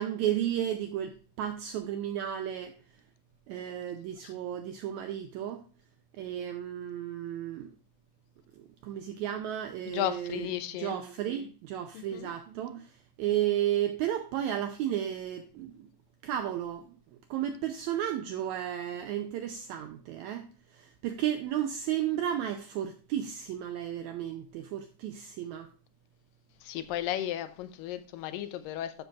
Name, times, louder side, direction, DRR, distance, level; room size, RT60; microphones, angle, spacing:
voice 1, 0.0-2.8 3.5-5.7 6.2-7.7 8.8-10.5 10.8-15.9 16.2-17.0 17.3-25.7, right 11 dB, 80° right, 1.7 m, -33 dB
voice 2, 9.9-11.0 11.9-12.3 26.6-28.9, left 12 dB, 90° left, 2.4 m, -34 dB
13.0 x 6.9 x 2.4 m
omnidirectional pair, 3.8 m